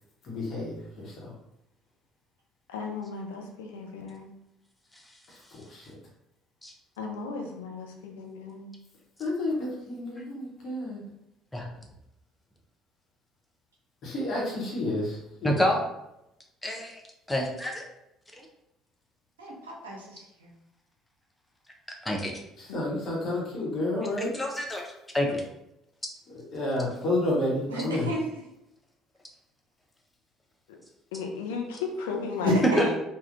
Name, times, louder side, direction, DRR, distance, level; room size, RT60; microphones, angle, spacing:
voice 1, 0.2-1.1 5.3-5.4 5.7-5.9 9.2-11.0 14.0-15.6 22.6-24.3 26.3-28.1, left 1 dB, 50° left, -4 dB, 1.0 m, -30 dB
voice 2, 2.7-4.3 7.0-8.7 22.7-23.1 30.7-30.8 31.1-32.9, left 4 dB, 70° left, 2 dB, 0.5 m, -35 dB
voice 3, 15.4-15.8 16.6-17.0 17.3-17.9 18.4-18.5 22.0-22.3 24.2-25.4 32.8-32.9, left 1 dB, 10° left, 0 dB, 0.6 m, -28 dB
voice 4, 19.4-20.5 27.7-28.2 32.4-32.9, right 1 dB, 80° right, -2 dB, 0.6 m, -34 dB
3.5 x 2.2 x 2.5 m, 0.86 s
figure-of-eight pair, 55°, 0 cm